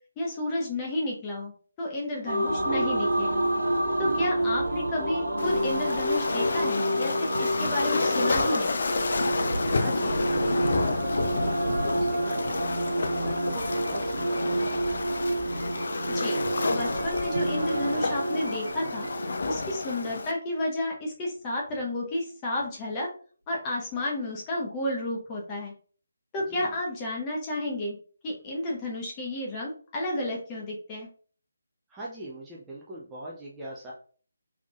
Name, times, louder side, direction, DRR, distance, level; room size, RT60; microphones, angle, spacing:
voice 1, 0.2-1.5 1.8-3.4 4.0-8.7 16.1-16.4 16.7-19.1 19.4-23.1 23.5-25.7 26.3-28.0 28.2-31.1, left 1 dB, 20° left, -2 dB, 0.9 m, -31 dB
sound 1, 2.3-19.6, right 1 dB, 70° right, 0.6 m, -29 dB
voice 2, 4.0-4.6 9.8-12.6 13.1-15.1 26.4-26.8 31.9-33.9, right 1 dB, 10° right, -6 dB, 0.5 m, -41 dB
Waves surf, 5.4-20.3, left 3 dB, 50° left, 0.4 m, -30 dB
Thunder, 9.3-16.4 17.4-17.5 19.0-19.2 19.6-19.7 21.6-21.9 22.6-22.9, equal, 80° left, 1.1 m, -40 dB
3.4 x 3.3 x 2.4 m, 0.43 s
figure-of-eight pair, 150°, 0 cm